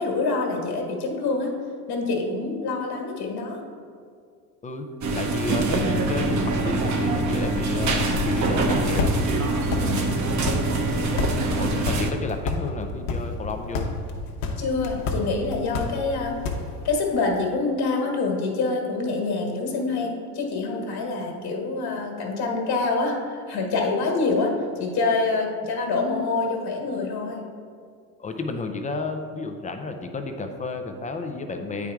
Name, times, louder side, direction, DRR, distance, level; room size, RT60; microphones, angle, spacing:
voice 1, 0.0-1.6 1.9-3.6 9.8-10.3 14.6-16.4 16.8-24.5 24.8-27.4, left 3 dB, 50° left, 1 dB, 1.6 m, -26 dB
sound 1, 5.0-12.1, right 2 dB, 35° right, 0.9 m, -24 dB
voice 2, 5.1-9.1 11.6-13.9 28.2-31.9, left 3 dB, 15° left, 5 dB, 0.4 m, -31 dB
sound 2, 7.4-17.0, left 3 dB, 65° left, 1.1 m, -31 dB
8.5 x 4.8 x 3.5 m, 2.2 s
supercardioid pair, 95°, 50 cm